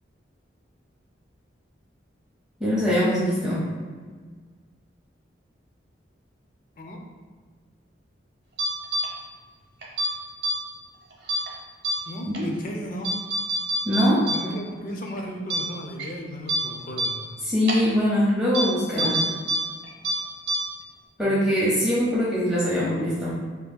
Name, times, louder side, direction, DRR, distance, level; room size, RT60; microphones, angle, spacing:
voice 1, 2.6-3.6 12.3-12.5 13.8-14.2 17.4-19.2 21.2-23.3, equal, 5° right, -9 dB, 0.7 m, -22 dB
sound 1, 8.6-9.0 9.8-10.1 10.4-10.5 11.3-11.5 11.8-11.9 12.3-12.4 13.0-14.4 14.7-14.8 15.2-15.3 15.5-15.6 16.0-16.1 16.5-16.6 17.0-17.1 17.7-17.8 18.5-18.6 19.0-19.6 19.8-20.1 20.5-20.6, right 1 dB, 55° right, 0.8 m, -25 dB
voice 2, 12.1-13.1 14.3-17.3 18.9-19.2 21.2-21.4, equal, 45° left, 2 dB, 0.5 m, -35 dB
5.7 x 2.7 x 2.2 m, 1.5 s
head